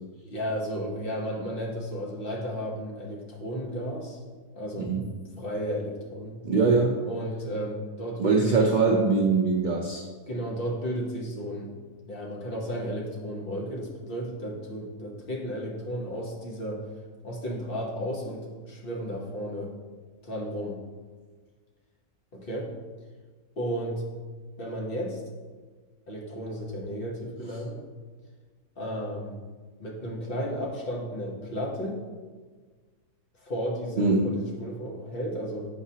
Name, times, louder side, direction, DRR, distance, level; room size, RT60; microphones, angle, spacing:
voice 1, 0.2-4.2 4.5-4.9 5.4-6.4 7.0-8.6 10.3-11.7 12.1-16.8 17.2-19.7 20.2-20.8 22.3-22.7 23.6-24.0 24.6-25.2 26.1-27.8 28.8-29.4 29.8-32.0 33.4-35.7, equal, 40° left, -2 dB, 1.1 m, -33 dB
voice 2, 6.4-7.0 8.2-10.0 34.0-34.3, right 4 dB, 90° right, -1 dB, 0.4 m, -22 dB
7.4 x 4.8 x 2.8 m, 1.4 s
omnidirectional pair, 1.6 m